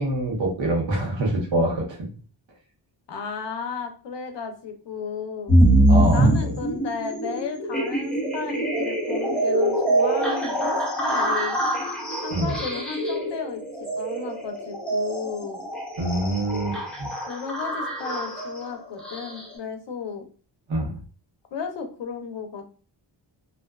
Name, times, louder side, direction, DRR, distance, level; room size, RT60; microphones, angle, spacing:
voice 1, 0.0-2.1 5.9-6.5 12.3-12.6 16.0-17.1 20.7-21.0, right 1 dB, 75° right, -1 dB, 0.9 m, -25 dB
voice 2, 3.1-5.5 6.1-10.7 11.0-11.6 12.2-15.6 17.3-20.3 21.5-22.8, left 6 dB, 70° left, 6 dB, 0.6 m, -34 dB
sound 1, 5.5-19.6, right 1 dB, ahead, 0.8 m, -24 dB
2.5 x 2.2 x 2.2 m, 0.39 s
wide cardioid pair, 125°, 46 cm